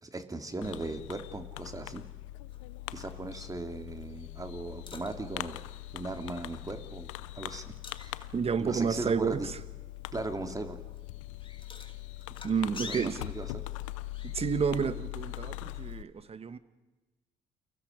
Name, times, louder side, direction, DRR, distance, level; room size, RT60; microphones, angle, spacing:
voice 1, 0.0-2.0 2.9-5.6 5.9-8.3 8.6-9.5 10.1-10.8 12.8-13.6, right 2 dB, 20° right, 7 dB, 2.8 m, -38 dB
Fireworks, 0.6-16.0, left 16 dB, 85° left, 0.7 m, -42 dB
sound 1, 2.5-14.5, left 4 dB, 35° left, 2.9 m, -51 dB
voice 2, 8.3-9.6 12.4-13.2 14.2-16.6, right 6 dB, 40° right, 13 dB, 1.6 m, -30 dB
30.0 x 24.0 x 5.2 m, 1.1 s
hypercardioid pair, 55°, 16 cm